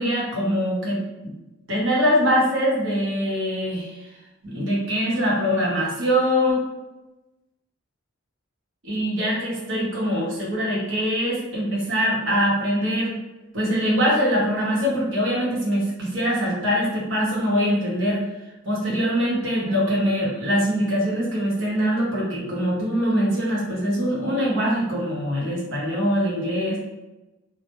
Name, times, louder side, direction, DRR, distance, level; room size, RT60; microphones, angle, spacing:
voice 1, 0.0-1.3 1.7-4.1 4.4-6.6 8.8-13.1 13.5-18.2 18.6-26.8, equal, 70° right, -5 dB, 0.8 m, -23 dB
2.1 x 2.0 x 2.9 m, 1.0 s
head